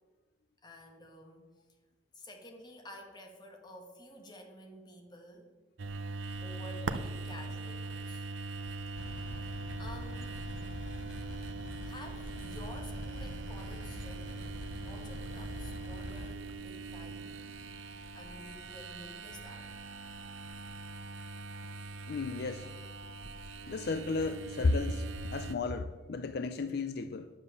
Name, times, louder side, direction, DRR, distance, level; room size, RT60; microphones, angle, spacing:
voice 1, 0.6-1.5 2.1-5.5 6.4-8.2 9.5-10.4 11.8-17.6 18.1-19.7, left 1 dB, 25° left, 2 dB, 1.7 m, -51 dB
sound 1, 5.8-25.5, right 3 dB, 90° right, 0.6 m, -42 dB
sound 2, 9.0-16.4, left 2 dB, 75° left, 0.8 m, -45 dB
voice 2, 22.1-22.7 23.7-27.3, left 3 dB, 55° left, 9 dB, 0.5 m, -33 dB
9.8 x 7.5 x 6.9 m, 1.3 s
head